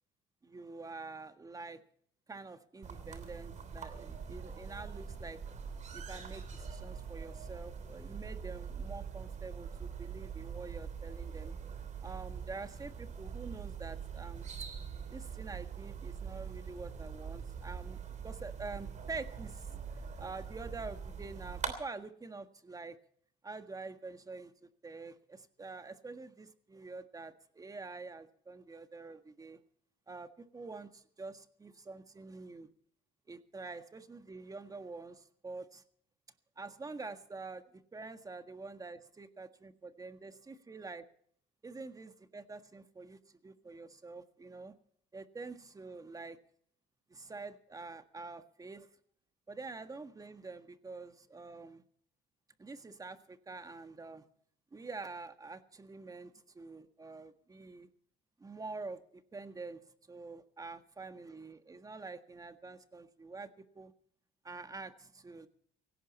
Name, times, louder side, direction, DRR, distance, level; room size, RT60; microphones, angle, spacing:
voice 1, 0.4-1.8 2.3-5.4 5.9-11.6 12.0-14.5 15.1-19.8 20.2-23.0 23.4-29.6 30.1-32.7 33.3-35.8 36.6-41.0 41.6-44.7 45.1-46.4 47.1-48.9 49.5-51.8 52.6-54.2 54.7-57.9 58.4-59.8 60.1-63.9 64.4-65.5, right 3 dB, 20° right, 9 dB, 1.6 m, -46 dB
sound 1, 2.8-21.7, right 6 dB, 45° right, 3.1 m, -43 dB
18.0 x 16.5 x 4.3 m, 0.63 s
cardioid pair, 110°, 17 cm